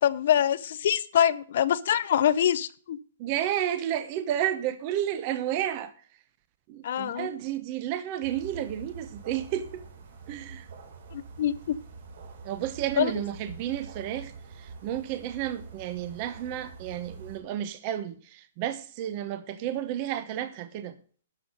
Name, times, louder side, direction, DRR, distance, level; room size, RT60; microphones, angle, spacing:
voice 1, 0.0-3.0 6.8-7.3 11.1-11.7 13.0-13.1, left 10 dB, 55° left, 0.6 m, -24 dB
voice 2, 3.2-5.9 6.7-9.8 10.3-10.7 12.4-21.0, right 11 dB, 30° right, 0.9 m, -31 dB
sound 1, 8.2-17.4, right 4 dB, 60° right, 4.1 m, -46 dB
12.5 x 5.6 x 6.4 m
hypercardioid pair, 165°, 0 cm